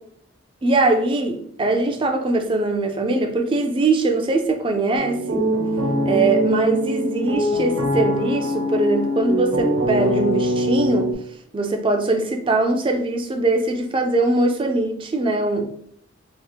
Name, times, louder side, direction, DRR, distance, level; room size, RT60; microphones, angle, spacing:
voice 1, 0.6-5.4 6.0-11.1 11.5-15.7, right 2 dB, 25° right, 0.3 m, -21 dB
sound 1, 5.0-11.1, equal, 75° right, 1.0 m, -23 dB
2.9 x 2.4 x 3.5 m
head